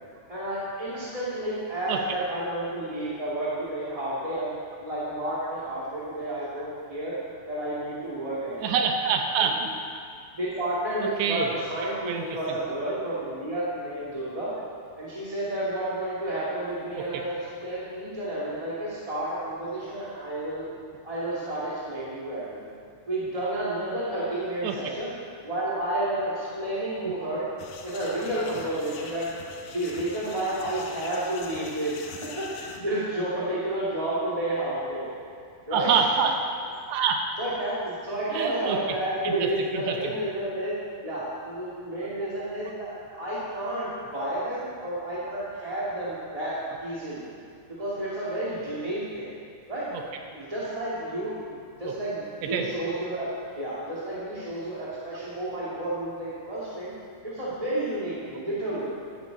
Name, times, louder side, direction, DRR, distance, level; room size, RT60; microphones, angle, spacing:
voice 1, 0.3-4.5 4.8-7.2 7.5-8.7 9.4-9.5 10.4-14.5 15.0-20.7 21.0-22.7 23.1-25.1 25.4-27.5 27.8-29.3 29.7-35.1 35.7-35.9 37.4-40.7 41.0-47.3 47.8-49.3 49.7-49.9 50.3-53.3 53.5-56.9 57.2-59.0, right 1 dB, 15° right, -9 dB, 1.2 m, -31 dB
voice 2, 8.6-9.7 11.0-11.5 12.1-12.4 17.0-17.2 24.6-24.9 35.7-36.3 36.9-37.3 38.3-38.8 39.2-40.0 49.9-50.0 51.8-51.9 52.4-52.7, right 6 dB, 80° right, 3 dB, 3.0 m, -26 dB
sound 1, 27.6-32.8, left 5 dB, 75° left, 2.9 m, -42 dB
14.0 x 13.0 x 4.1 m, 2.3 s
omnidirectional pair, 4.9 m